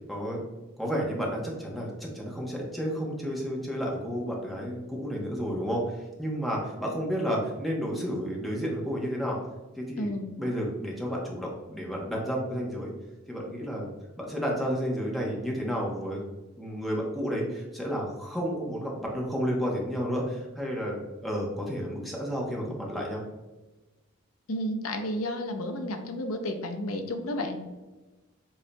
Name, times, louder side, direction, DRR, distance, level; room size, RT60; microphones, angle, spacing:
voice 1, 0.1-0.4 0.8-9.4 9.8-10.1 10.4-12.9 13.3-13.9 14.2-16.2 16.6-23.2, equal, ahead, -3 dB, 0.8 m, -31 dB
voice 2, 10.0-10.3 24.5-27.6, left 1 dB, 85° left, 5 dB, 0.6 m, -32 dB
7.8 x 2.7 x 2.2 m, 1.1 s
head